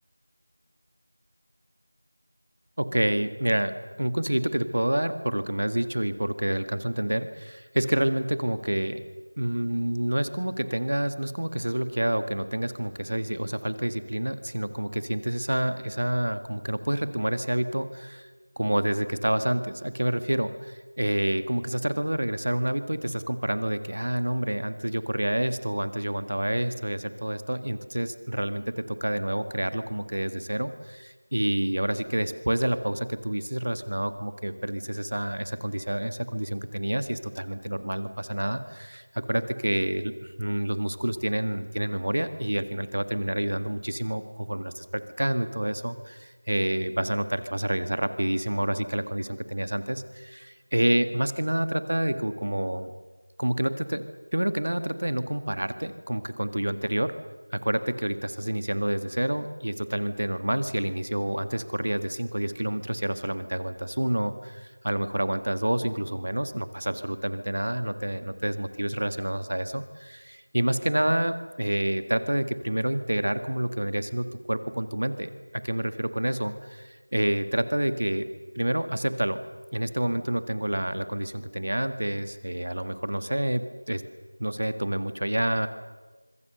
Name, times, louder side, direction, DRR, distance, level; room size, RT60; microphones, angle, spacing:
voice 1, 2.8-3.7 4.0-9.0 9.4-18.3 18.6-52.9 53.4-54.1 54.3-57.1 57.5-78.3 78.6-79.4 79.7-84.0 84.4-85.7, right 1 dB, 50° right, 11 dB, 1.8 m, -28 dB
26.0 x 24.0 x 6.8 m, 1.3 s
figure-of-eight pair, 180°, 0 cm